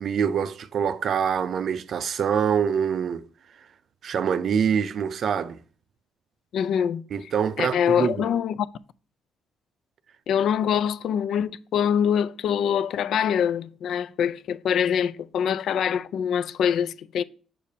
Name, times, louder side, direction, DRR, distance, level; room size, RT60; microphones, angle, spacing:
voice 1, 0.0-3.2 4.0-5.6 7.1-8.2, right 7 dB, 55° right, 0.5 m, -25 dB
voice 2, 6.5-7.0 7.6-8.7 10.3-17.2, left 8 dB, 65° left, 0.4 m, -24 dB
7.4 x 6.6 x 2.7 m
cardioid pair, 115°, 0 cm